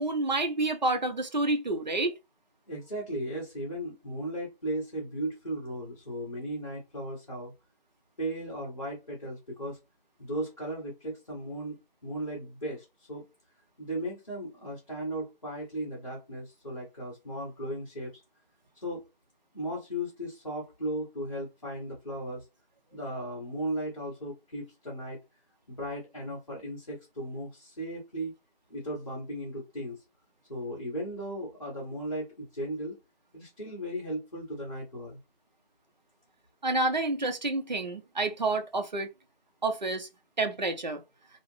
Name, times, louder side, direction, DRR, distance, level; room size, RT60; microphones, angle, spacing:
voice 1, 0.0-2.1 36.6-39.1 39.6-40.1 40.4-41.0, right 2 dB, 50° right, 0.5 m, -29 dB
voice 2, 2.7-7.5 8.2-9.8 10.2-13.2 13.8-18.1 18.7-19.0 19.5-22.4 22.9-25.2 25.7-28.3 28.7-30.0 30.5-33.0 33.3-35.2, right 1 dB, 35° left, 1.0 m, -36 dB
2.5 x 2.4 x 3.1 m
figure-of-eight pair, 175°, 30 cm